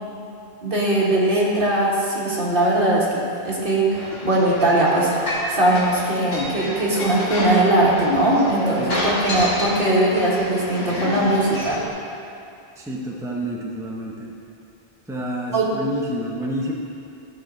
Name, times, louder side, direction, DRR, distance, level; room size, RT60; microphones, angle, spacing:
voice 1, 0.6-5.1 5.5-11.8 15.5-15.7, right 1 dB, 60° right, -5 dB, 1.9 m, -20 dB
sound 1, 3.9-11.9, equal, 80° left, 2.2 m, -29 dB
voice 2, 12.8-14.3 15.1-16.7, equal, 5° right, -3 dB, 0.8 m, -29 dB
13.5 x 6.2 x 3.9 m, 2.7 s
omnidirectional pair, 1.0 m